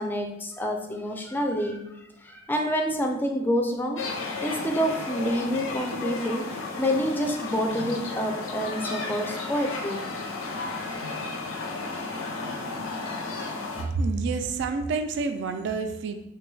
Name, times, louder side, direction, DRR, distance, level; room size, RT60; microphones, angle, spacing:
voice 1, 0.0-1.9 2.2-4.0 4.4-10.0, equal, 10° left, 2 dB, 0.3 m, -28 dB
sound 1, 4.0-13.8, left 3 dB, 85° left, 0.6 m, -33 dB
voice 2, 13.9-16.3, right 4 dB, 65° right, 7 dB, 0.3 m, -28 dB
3.3 x 2.2 x 3.1 m, 0.87 s
head